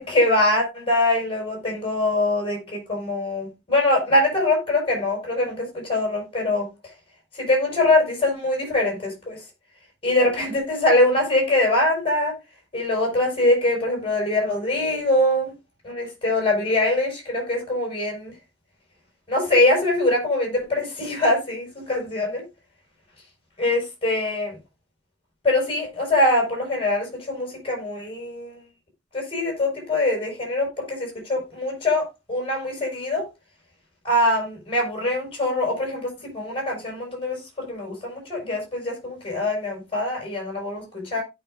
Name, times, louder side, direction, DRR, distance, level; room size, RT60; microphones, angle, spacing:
voice 1, 0.0-6.7 7.4-9.4 10.0-12.3 12.7-15.5 15.8-18.3 19.3-22.4 23.6-24.6 25.4-28.6 29.1-33.2 34.0-41.2, left 1 dB, 30° left, 5.6 m, -23 dB
16.5 x 6.0 x 2.5 m
head